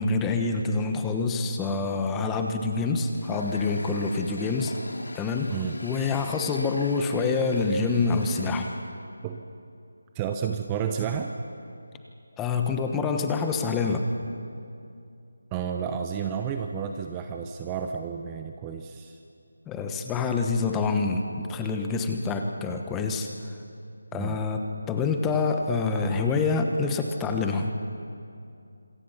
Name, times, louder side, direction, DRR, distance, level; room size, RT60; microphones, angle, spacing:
voice 1, 0.0-4.8 5.1-5.6 5.8-8.7 12.4-14.1 19.7-23.3 24.1-27.7, left 4 dB, 10° left, 5 dB, 1.1 m, -26 dB
Water tap faucet, 3.1-8.9, left 1 dB, 85° left, 3.2 m, -42 dB
voice 2, 10.1-11.3 15.5-19.2 24.1-24.4, right 7 dB, 15° right, 5 dB, 0.7 m, -31 dB
27.0 x 22.0 x 5.7 m, 2.5 s
figure-of-eight pair, 165°, 0 cm